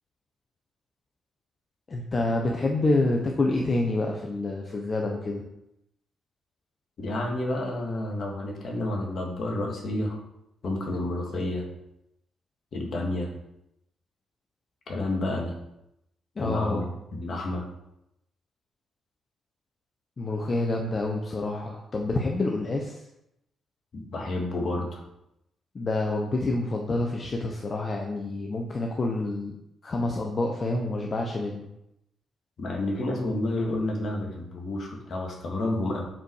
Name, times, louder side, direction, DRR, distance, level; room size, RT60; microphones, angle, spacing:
voice 1, 1.9-5.4 16.4-16.8 20.2-23.0 25.7-29.5 29.8-31.7, left 2 dB, 40° left, 1 dB, 1.2 m, -27 dB
voice 2, 7.0-10.2 10.6-11.7 12.7-13.3 14.9-15.6 16.4-16.8 17.1-17.7 23.9-25.0 32.6-36.0, left 1 dB, 60° left, 0 dB, 2.2 m, -30 dB
7.6 x 4.9 x 4.9 m, 0.84 s
supercardioid pair, 50°, 0 cm